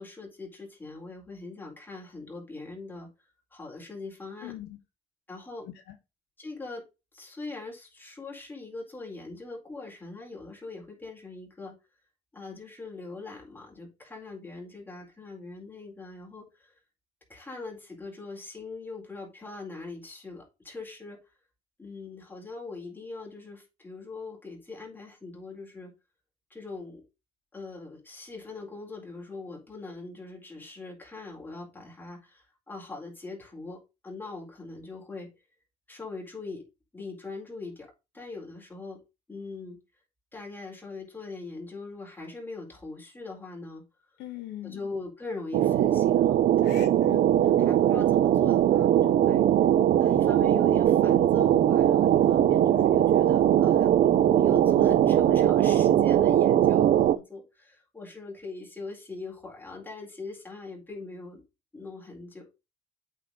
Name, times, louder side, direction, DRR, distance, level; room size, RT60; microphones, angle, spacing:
voice 1, 0.0-4.5 5.3-5.7 6.4-6.8 7.1-11.7 12.3-16.8 17.3-21.3 21.8-25.9 26.5-27.0 27.5-35.3 35.9-36.6 36.9-37.9 38.1-39.0 39.3-39.8 40.3-43.8 44.6-46.8 47.0-47.2 47.6-49.4 50.0-61.4 61.7-62.5, left 3 dB, 10° left, 4.1 m, -41 dB
voice 2, 4.4-4.8 5.6-5.9 44.2-44.8 46.6-47.2, left 12 dB, 80° left, 1.2 m, -41 dB
sound 1, 45.5-57.2, right 11 dB, 55° right, 0.6 m, -21 dB
8.5 x 3.8 x 5.2 m
cardioid pair, 110°, 17 cm